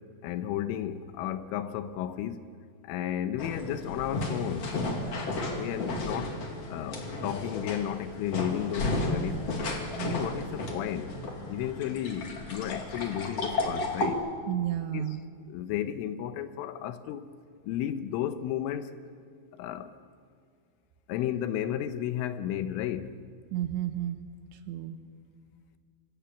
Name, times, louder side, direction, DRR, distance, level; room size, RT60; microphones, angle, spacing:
voice 1, 0.2-2.5 2.8-4.8 5.6-6.4 6.7-9.5 10.0-11.2 11.5-14.3 14.9-15.1 15.5-17.2 17.6-18.9 19.6-19.9 21.1-23.2, left 11 dB, 80° left, 3.4 m, -33 dB
sound 1, 3.4-14.1, left 2 dB, 40° left, 2.7 m, -33 dB
voice 2, 10.0-10.3 14.5-15.2 23.5-24.2 24.5-25.0, right 12 dB, 75° right, 3.0 m, -32 dB
25.5 x 25.5 x 7.2 m
omnidirectional pair, 5.8 m